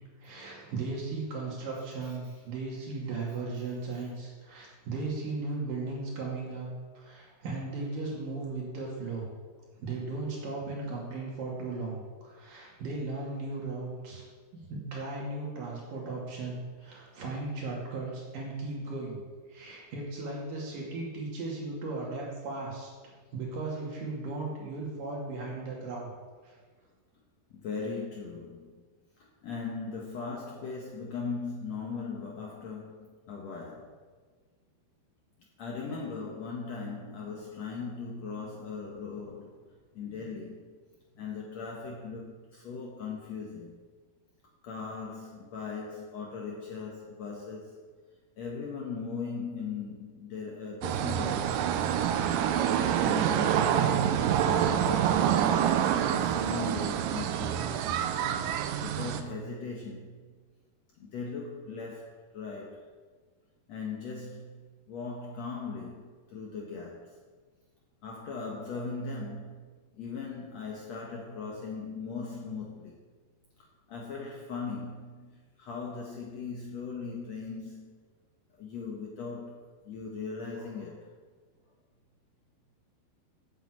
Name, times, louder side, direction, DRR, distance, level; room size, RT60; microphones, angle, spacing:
voice 1, 0.2-6.7 7.0-9.3 9.8-14.2 14.7-19.2 19.5-22.9 23.3-26.1 26.4-26.6, right 3 dB, 60° right, -3 dB, 3.8 m, -36 dB
voice 2, 1.7-2.4 3.3-3.4 27.5-28.8 29.2-33.9 35.6-40.8 41.1-43.9 44.6-47.9 48.4-51.8 52.8-55.6 56.0-57.9 58.8-60.3 61.0-62.9 63.7-64.6 64.9-67.2 68.0-69.6 69.9-73.0 73.6-78.0 78.5-81.1, left 4 dB, 75° left, -1 dB, 1.5 m, -39 dB
sound 1, 50.8-59.2, right 9 dB, 90° right, 1.9 m, -27 dB
8.3 x 7.9 x 7.7 m, 1.5 s
omnidirectional pair, 4.6 m